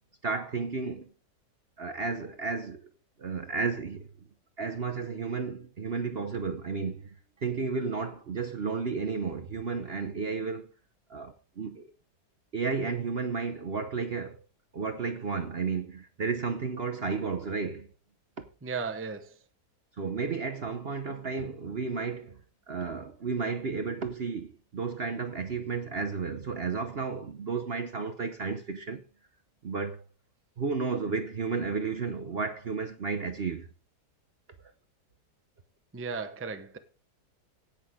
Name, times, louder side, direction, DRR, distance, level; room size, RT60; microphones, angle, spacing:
voice 1, 0.2-1.1 1.8-2.8 3.2-4.1 4.6-7.0 7.4-10.7 11.1-11.9 12.5-14.4 14.7-17.9 20.0-22.4 22.7-29.0 29.6-30.0 30.6-33.7, right 4 dB, 45° right, 0.9 m, -32 dB
voice 2, 18.6-19.3 35.9-36.8, right 5 dB, 10° right, 0.7 m, -35 dB
17.5 x 6.2 x 3.7 m
omnidirectional pair, 1.8 m